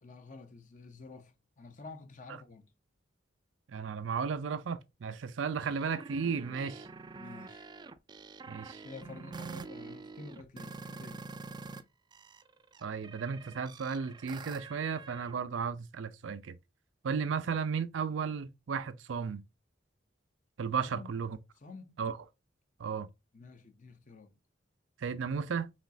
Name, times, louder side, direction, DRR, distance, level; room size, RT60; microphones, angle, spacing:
voice 1, 0.0-2.7 7.2-7.7 8.8-11.2 20.8-21.2 21.6-22.0 23.3-24.4, left 3 dB, 45° left, 0.6 m, -50 dB
voice 2, 3.7-6.9 8.5-8.8 12.8-16.6 17.0-19.4 20.6-21.4 22.0-22.2 22.8-23.1 25.0-25.7, right 6 dB, 90° right, 0.5 m, -34 dB
sound 1, 5.6-11.8 12.1-15.4, right 4 dB, 25° right, 0.3 m, -46 dB
5.0 x 3.0 x 2.6 m
head